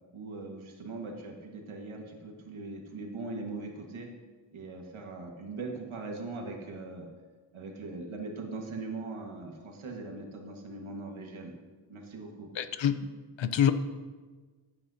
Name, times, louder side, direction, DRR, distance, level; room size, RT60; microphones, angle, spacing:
voice 1, 0.1-4.1 4.5-7.1 7.5-11.5 11.9-12.5, right 3 dB, 80° right, 1 dB, 1.8 m, -40 dB
voice 2, 12.6-13.0 13.4-13.7, left 9 dB, 70° left, 11 dB, 0.7 m, -25 dB
16.0 x 8.9 x 2.8 m, 1.4 s
wide cardioid pair, 165°, 48 cm